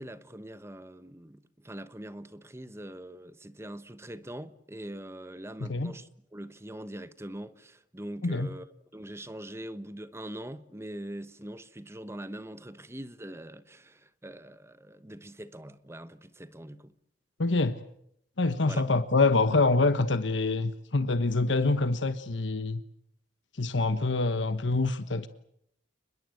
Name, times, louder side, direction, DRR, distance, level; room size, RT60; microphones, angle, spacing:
voice 1, 0.0-8.7 8.9-16.9 18.6-18.8, right 1 dB, 15° right, 1.1 m, -43 dB
voice 2, 5.6-5.9 8.2-8.5 17.4-17.8 18.4-22.8 23.6-25.3, left 3 dB, 75° left, 1.2 m, -26 dB
30.0 x 21.5 x 7.9 m
head